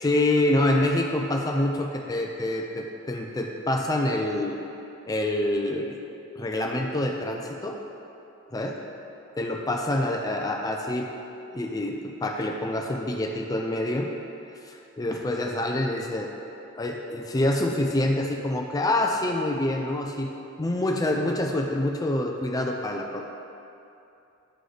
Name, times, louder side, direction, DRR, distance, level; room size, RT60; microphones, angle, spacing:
voice 1, 0.0-4.6 5.1-6.0 6.3-7.8 8.5-8.8 9.4-11.1 11.5-14.1 14.7-16.3 16.7-20.3 20.6-23.2, left 1 dB, 15° left, 2 dB, 0.4 m, -26 dB
11.0 x 3.9 x 3.3 m, 2.7 s
head